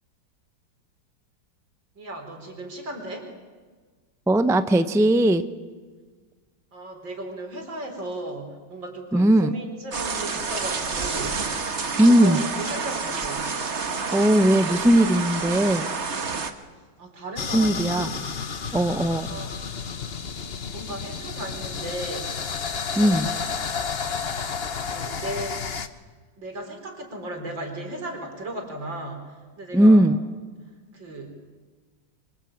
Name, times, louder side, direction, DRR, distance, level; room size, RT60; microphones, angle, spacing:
voice 1, 1.9-3.3 6.7-11.5 12.0-13.5 17.0-18.2 19.3-19.5 20.7-22.4 22.7-23.4 24.8-25.7 26.4-30.0 30.9-31.5, right 1 dB, 85° right, 4 dB, 5.0 m, -36 dB
voice 2, 4.3-5.4 9.1-9.5 12.0-12.4 14.1-15.9 17.5-18.1 18.7-19.3 23.0-23.3 29.7-30.2, right 1 dB, 5° right, 11 dB, 0.5 m, -18 dB
sound 1, 9.9-16.5, right 4 dB, 40° right, 1.7 m, -29 dB
sound 2, 17.4-25.9, left 6 dB, 40° left, 1.2 m, -31 dB
26.5 x 24.5 x 8.8 m, 1.4 s
omnidirectional pair, 2.0 m